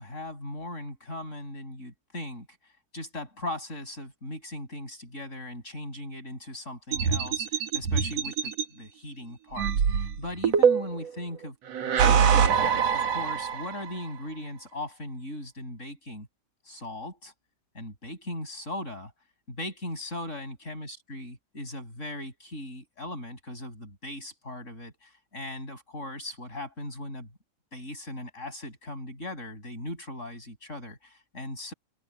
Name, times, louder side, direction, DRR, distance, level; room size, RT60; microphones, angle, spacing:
voice 1, 0.0-2.5 2.9-11.6 12.0-16.3 16.6-17.3 17.7-19.1 19.5-27.3 27.7-31.7, left 1 dB, 20° left, 8.4 m, -39 dB
sound 1, 6.9-8.6 9.6-11.1 11.7-13.9, right 7 dB, 55° right, 2.7 m, -24 dB
open air
omnidirectional pair, 3.6 m